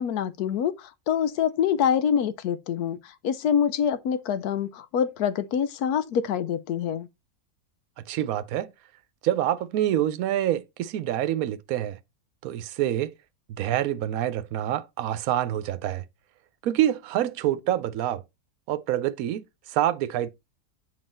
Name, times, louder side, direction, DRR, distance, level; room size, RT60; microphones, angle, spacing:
voice 1, 0.0-7.1, left 8 dB, 80° left, 1.2 m, -26 dB
voice 2, 8.1-8.7 9.2-12.0 12.4-13.1 13.5-16.0 16.6-18.2 18.7-20.3, right 12 dB, 75° right, 1.1 m, -26 dB
7.8 x 4.3 x 4.2 m
omnidirectional pair, 1.6 m